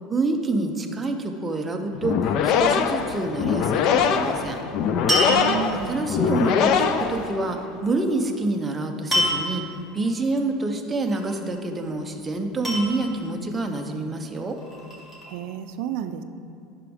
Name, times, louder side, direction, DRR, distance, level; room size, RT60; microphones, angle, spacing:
voice 1, 0.1-4.6 5.7-9.6 9.9-14.6, right 2 dB, 15° right, 3 dB, 0.6 m, -27 dB
sound 1, 1.9-7.7, left 7 dB, 45° left, 0.4 m, -23 dB
sound 2, 5.1-6.0 9.1-9.7 11.1-11.6 12.6-13.4 14.4-15.3, equal, 5° left, 1.8 m, -26 dB
voice 2, 5.3-6.1 15.3-16.2, right 10 dB, 65° right, 9 dB, 0.4 m, -31 dB
11.0 x 6.0 x 3.5 m, 2.6 s
cardioid pair, 160°, 0 cm